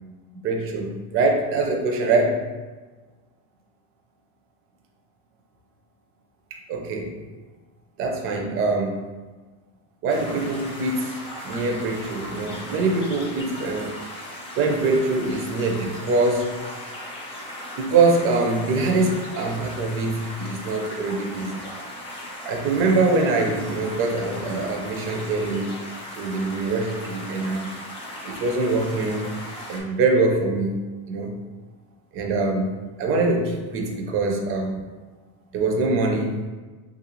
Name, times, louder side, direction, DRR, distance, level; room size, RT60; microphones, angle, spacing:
voice 1, 0.4-2.4 6.5-7.2 8.0-9.0 10.0-11.2 11.4-14.0 14.6-16.5 17.8-21.5 22.4-25.7 26.2-27.7 28.2-29.3 29.7-30.7 31.1-31.4 32.1-32.7 33.0-34.8 35.5-36.4, right 3 dB, 35° right, 3 dB, 0.4 m, -23 dB
sound 1, 10.1-29.8, left 1 dB, 15° left, 0.5 m, -37 dB
3.3 x 2.5 x 2.9 m, 1.3 s
cardioid pair, 150°, 40 cm